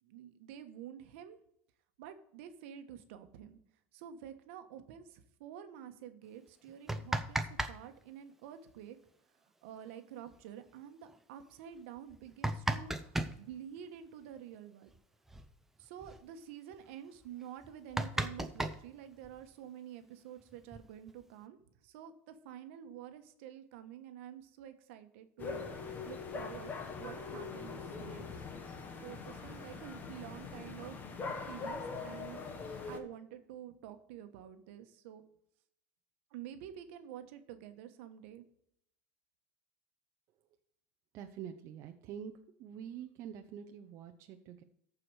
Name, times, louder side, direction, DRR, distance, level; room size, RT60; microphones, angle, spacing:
voice 1, 0.0-1.4 2.0-3.6 3.9-9.0 9.6-14.9 15.8-28.5 29.0-31.0 31.5-32.4 32.9-35.2 36.3-38.4, right 10 dB, 75° right, 8 dB, 1.2 m, -49 dB
sound 1, 6.7-7.8 8.0-8.1 9.9-10.0 10.3-10.4 11.0-11.2 12.0-13.4 14.9-15.0 15.3-15.5 15.8-16.2 16.7-16.8 17.2-17.3 17.6-19.5 20.4-21.2, right 1 dB, 5° right, 0.6 m, -36 dB
sound 2, 25.4-33.0, left 4 dB, 25° left, 1.3 m, -42 dB
voice 2, 41.1-42.3 42.6-44.6, right 8 dB, 45° right, 5 dB, 0.7 m, -46 dB
14.0 x 4.9 x 4.8 m, 0.72 s
supercardioid pair, 135°, 7 cm